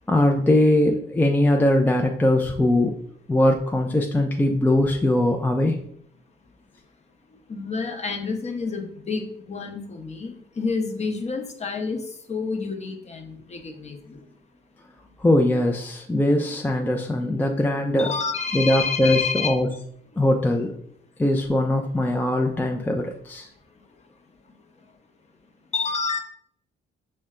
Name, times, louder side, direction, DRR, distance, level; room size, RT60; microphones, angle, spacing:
voice 1, 0.1-2.9 3.3-5.8 15.2-18.1 18.5-19.7 20.2-20.7 21.2-23.5, left 1 dB, 10° left, 2 dB, 0.4 m, -21 dB
voice 2, 7.5-12.0 12.3-14.2 18.0-19.5 25.7-26.2, left 5 dB, 35° left, 4 dB, 0.8 m, -29 dB
5.4 x 2.2 x 3.6 m, 0.65 s
cardioid pair, 90°, 20 cm